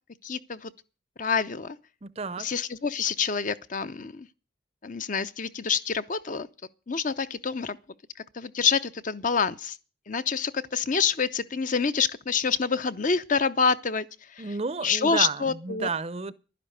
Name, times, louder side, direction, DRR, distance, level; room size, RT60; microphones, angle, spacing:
voice 1, 0.2-0.7 1.2-1.8 2.4-4.3 4.8-6.5 6.9-7.8 8.3-9.8 10.1-15.9, left 5 dB, 40° left, 0.7 m, -27 dB
voice 2, 2.0-2.5 14.4-16.3, right 4 dB, 30° right, 0.6 m, -31 dB
12.0 x 10.5 x 6.6 m
head